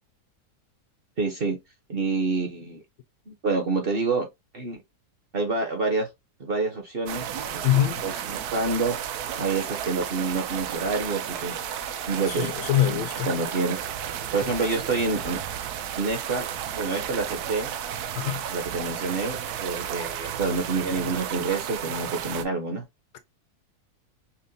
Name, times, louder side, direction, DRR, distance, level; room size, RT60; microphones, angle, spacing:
voice 1, 1.2-1.6 1.9-2.8 3.3-4.3 4.5-4.8 5.3-6.1 6.4-7.6 8.0-9.0 9.4-11.6 12.1-12.5 12.9-13.9 14.3-15.4 16.0-16.5 16.7-17.7 18.5-22.9, right 3 dB, 45° right, 0.8 m, -27 dB
sound 1, 7.1-22.4, right 9 dB, 75° right, 1.1 m, -33 dB
voice 2, 7.6-8.0 12.4-13.3 18.2-18.4, left 12 dB, 85° left, 1.2 m, -23 dB
5.6 x 2.1 x 2.6 m
omnidirectional pair, 1.7 m